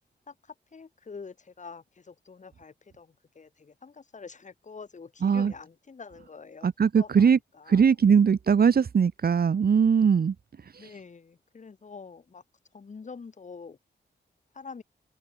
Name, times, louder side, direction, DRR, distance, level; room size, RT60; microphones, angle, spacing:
voice 1, 0.3-6.7 7.0-7.9 10.8-12.4 12.7-13.8 14.5-14.8, left 5 dB, 40° left, 5.7 m, -46 dB
voice 2, 5.2-5.5 6.6-7.4 7.7-10.3, right 6 dB, 55° right, 2.1 m, -21 dB
wide cardioid pair, 165°, 18 cm